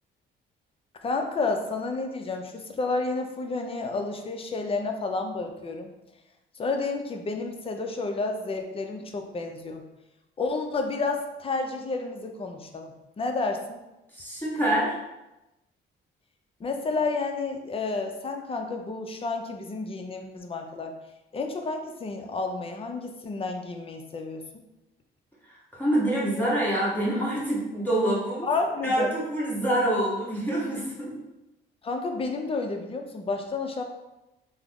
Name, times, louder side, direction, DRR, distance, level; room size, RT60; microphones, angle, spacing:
voice 1, 1.0-5.9 6.5-9.8 10.4-13.8 16.6-20.9 21.3-24.4 28.4-29.1 31.8-33.8, left 3 dB, 30° left, 4 dB, 0.5 m, -30 dB
voice 2, 14.1-15.0 25.4-28.5 28.8-31.2, right 1 dB, 10° left, -7 dB, 1.1 m, -26 dB
3.4 x 2.0 x 3.5 m, 0.98 s
cardioid pair, 90°, 20 cm